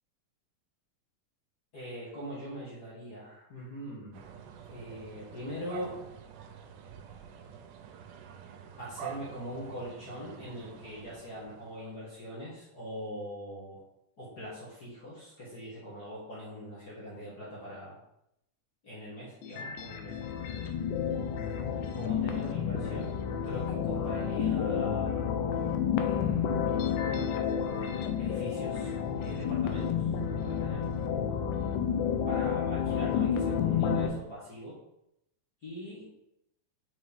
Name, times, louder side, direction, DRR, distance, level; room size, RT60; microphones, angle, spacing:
voice 1, 1.7-4.2 4.7-6.0 8.8-13.8 14.2-18.0 18.8-20.3 21.9-23.2 23.4-25.3 25.9-27.0 28.2-30.1 30.4-30.8 32.2-34.8 35.6-36.1, equal, 40° left, -8 dB, 1.6 m, -42 dB
sound 1, 4.1-12.0, right 8 dB, 90° right, 2.2 m, -47 dB
sound 2, 19.4-34.1, left 7 dB, 90° left, 2.2 m, -30 dB
5.6 x 4.9 x 3.5 m, 0.83 s
omnidirectional pair, 3.7 m